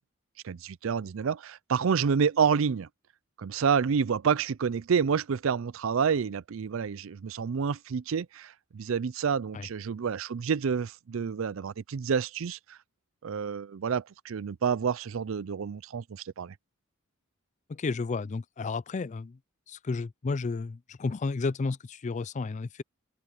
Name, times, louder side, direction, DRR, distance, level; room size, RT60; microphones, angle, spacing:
voice 1, 0.4-2.9 3.4-12.8 13.2-16.5, right 6 dB, 65° right, 0.4 m, -28 dB
voice 2, 17.7-19.4 19.7-22.8, left 4 dB, 35° left, 0.4 m, -32 dB
open air
head